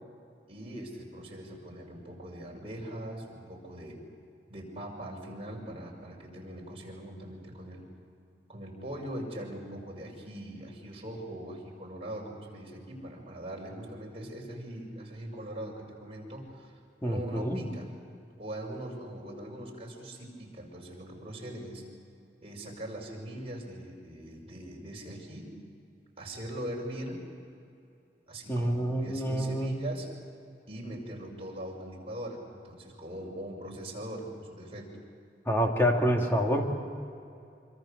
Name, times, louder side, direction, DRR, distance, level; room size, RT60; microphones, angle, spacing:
voice 1, 0.5-4.0 4.5-7.9 8.5-17.9 18.4-21.8 22.4-25.6 26.2-27.2 28.3-30.1 30.7-34.9, right 1 dB, 35° right, -1 dB, 5.8 m, -41 dB
voice 2, 17.0-17.6 28.5-29.7 35.5-36.7, equal, 15° left, 1 dB, 2.7 m, -27 dB
26.0 x 25.5 x 6.8 m, 2.5 s
head